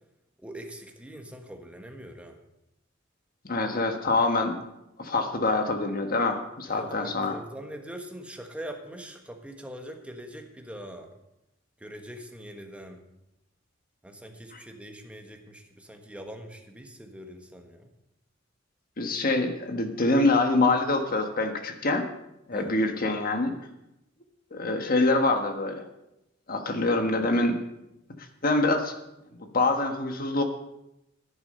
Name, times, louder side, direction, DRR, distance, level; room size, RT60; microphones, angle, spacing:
voice 1, 0.4-2.4 6.7-11.1 11.8-13.0 14.0-17.9 22.5-22.8, equal, 5° right, 4 dB, 1.3 m, -42 dB
voice 2, 3.5-4.6 5.0-7.4 19.0-22.1 22.5-23.5 24.5-25.8 26.5-27.6 28.4-28.9 29.5-30.4, left 2 dB, 50° left, 5 dB, 1.5 m, -25 dB
11.0 x 10.5 x 5.5 m, 0.88 s
head